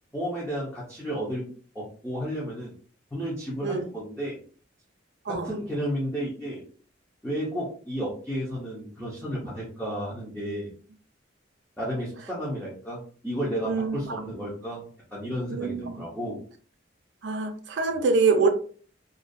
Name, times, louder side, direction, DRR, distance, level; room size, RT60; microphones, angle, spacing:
voice 1, 0.1-1.5 1.7-2.7 3.1-4.4 5.3-6.6 7.2-10.7 11.8-14.8 15.1-16.4, equal, 5° left, 0.6 m, -32 dB
voice 2, 13.7-14.4 15.5-16.0 17.2-18.5, right 4 dB, 65° right, 0.5 m, -25 dB
2.5 x 2.3 x 2.5 m
head